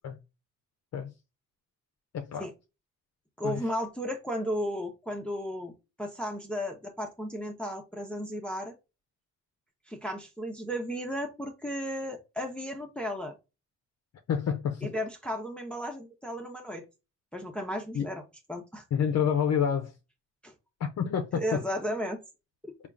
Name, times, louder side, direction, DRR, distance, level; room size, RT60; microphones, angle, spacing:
voice 1, 2.1-2.5 3.4-3.6 14.3-14.9 17.9-18.1 18.9-19.9 20.8-21.6, left 7 dB, 55° left, 0.6 m, -28 dB
voice 2, 3.4-5.7 6.0-8.7 9.9-13.4 14.8-16.8 17.3-18.2 18.5-18.8 20.4-20.5 21.3-22.2 22.6-22.7, equal, 5° left, 0.7 m, -34 dB
3.6 x 2.4 x 3.4 m
cardioid pair, 85°, 31 cm